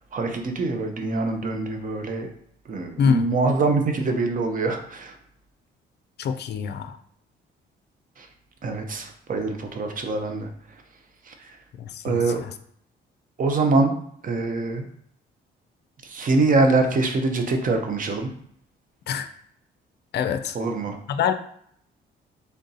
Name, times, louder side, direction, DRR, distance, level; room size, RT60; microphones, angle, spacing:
voice 1, 0.1-2.3 2.7-5.2 8.2-8.3 8.6-10.5 11.3-11.5 12.0-12.4 13.4-13.9 14.2-14.9 16.0-18.3 20.5-21.0, right 3 dB, 45° right, 5 dB, 0.7 m, -24 dB
voice 2, 3.0-3.3 6.2-7.0 11.8-12.5 19.1-19.3 20.1-20.6 21.1-21.3, left 7 dB, 60° left, 9 dB, 0.4 m, -25 dB
3.4 x 2.7 x 4.0 m, 0.66 s
cardioid pair, 90°, 20 cm